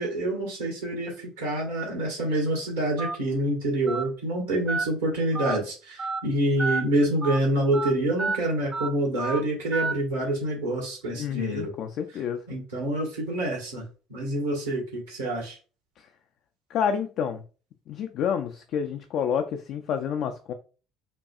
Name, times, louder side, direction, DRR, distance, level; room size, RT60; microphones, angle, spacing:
voice 1, 0.0-11.7 12.5-13.8 14.1-15.6, right 1 dB, 70° right, -1 dB, 1.5 m, -27 dB
Telephone, 3.0-3.2 3.9-4.0 4.7-4.9 5.4-5.6 6.0-6.2 6.6-6.8 7.2-7.4 7.7-7.9 8.2-8.4 8.7-8.9 9.2-9.4 9.7-9.9, right 3 dB, 25° right, 0.6 m, -29 dB
voice 2, 11.2-12.4 16.7-17.4 17.9-20.5, left 7 dB, 55° left, 6 dB, 0.4 m, -29 dB
5.2 x 2.3 x 2.4 m, 0.36 s
figure-of-eight pair, 55°, 0 cm